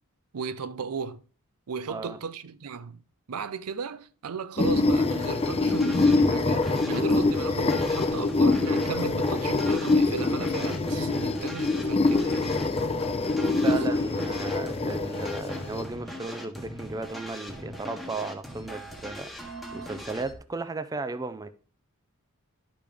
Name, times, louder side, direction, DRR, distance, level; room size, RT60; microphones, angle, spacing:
voice 1, 0.3-1.2 1.7-3.0 3.3-12.5 13.6-13.8, right 6 dB, 80° right, 0.5 m, -36 dB
voice 2, 1.9-2.2 13.3-21.5, right 3 dB, 15° right, 0.4 m, -35 dB
sound 1, 4.6-15.8, left 3 dB, 25° left, 0.6 m, -25 dB
sound 2, 5.2-20.3, equal, ahead, 1.1 m, -40 dB
11.5 x 5.2 x 3.4 m
head